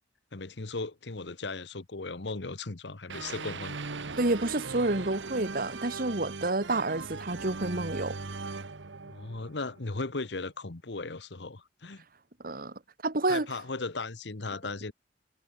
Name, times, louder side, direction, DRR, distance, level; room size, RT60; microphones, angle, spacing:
voice 1, 0.3-4.0 9.0-12.0 13.3-14.9, left 3 dB, 65° left, 1.2 m, -37 dB
sound 1, 3.1-10.1, right 4 dB, 80° right, 1.2 m, -39 dB
voice 2, 4.2-8.2 12.4-12.7 13.0-13.5, right 2 dB, 50° right, 1.7 m, -29 dB
head